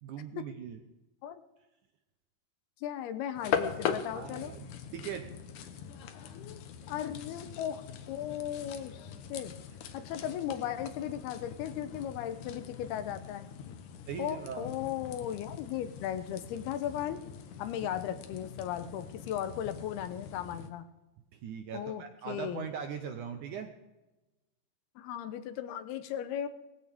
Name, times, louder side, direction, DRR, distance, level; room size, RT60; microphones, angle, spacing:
voice 1, 0.0-0.8 4.1-5.3 5.6-5.7 14.1-14.7 21.3-23.7, right 7 dB, 75° right, 6 dB, 1.9 m, -40 dB
voice 2, 2.8-4.5 6.9-9.5 9.9-13.5 14.2-17.2 17.6-20.9 21.7-22.7 25.0-26.5, left 10 dB, 85° left, 10 dB, 2.8 m, -36 dB
sound 1, 3.4-20.7, left 8 dB, 70° left, 2.1 m, -41 dB
19.5 x 15.0 x 3.5 m, 1.0 s
omnidirectional pair, 4.4 m